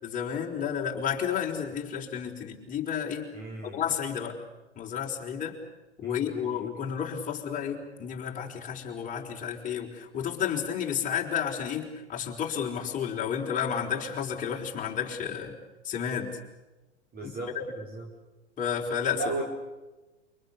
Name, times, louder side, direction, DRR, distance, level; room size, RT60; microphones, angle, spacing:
voice 1, 0.0-3.3 3.6-4.4 4.8-5.6 6.0-15.5 15.8-16.4 17.2-17.6 18.6-19.2, left 8 dB, 20° left, -1 dB, 4.5 m, -31 dB
voice 2, 3.3-3.8 6.0-7.0 17.1-18.1 19.1-19.4, right 2 dB, 25° right, 2 dB, 4.8 m, -37 dB
28.0 x 24.5 x 6.9 m, 1.1 s
hypercardioid pair, 105°, 35 cm